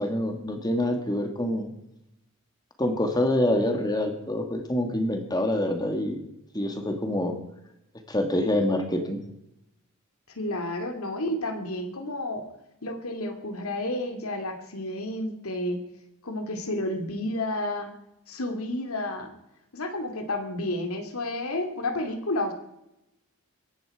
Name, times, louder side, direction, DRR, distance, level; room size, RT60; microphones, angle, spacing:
voice 1, 0.0-1.7 2.8-6.2 6.5-7.4 8.1-9.2, left 1 dB, 20° left, 5 dB, 2.0 m, -26 dB
voice 2, 10.3-12.5 12.8-15.8 16.2-17.9 18.3-19.3 19.7-22.5, left 1 dB, 80° left, 6 dB, 2.4 m, -31 dB
22.5 x 11.0 x 4.8 m, 0.87 s
head